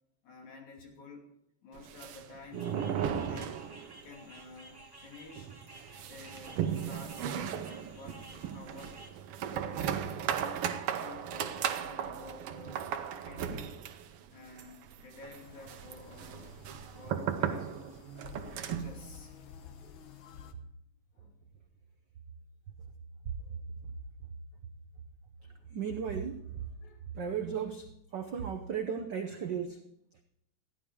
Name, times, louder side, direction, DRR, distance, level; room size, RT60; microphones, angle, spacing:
voice 1, 0.2-1.3 1.6-3.6 4.0-5.5 6.1-9.0 9.4-10.0 10.4-12.8 13.2-13.8 14.3-16.6 16.9-17.8 18.6-19.3 19.8-20.0 21.1-21.4 25.4-25.7 26.8-27.0, left 3 dB, 75° left, -1 dB, 4.1 m, -51 dB
sound 1, 1.8-4.1 4.4-4.5 4.8-4.9 5.4-19.0, right 9 dB, 70° right, 1.5 m, -36 dB
sound 2, 2.5-9.1, right 1 dB, 20° right, 0.5 m, -54 dB
sound 3, 15.4-20.5, left 6 dB, 60° left, 1.4 m, -52 dB
voice 2, 25.7-26.4 27.1-29.8, right 7 dB, 85° right, 4 dB, 0.9 m, -35 dB
15.0 x 11.0 x 4.7 m, 0.77 s
omnidirectional pair, 3.3 m